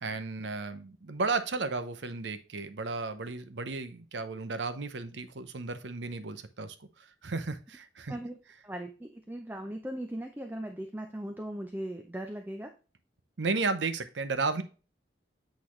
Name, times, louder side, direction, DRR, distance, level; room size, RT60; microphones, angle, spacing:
voice 1, 0.0-8.1 13.4-14.6, right 3 dB, 90° right, 11 dB, 0.8 m, -34 dB
voice 2, 8.1-12.7, right 1 dB, 10° right, 5 dB, 0.5 m, -39 dB
8.5 x 4.1 x 3.1 m, 0.34 s
head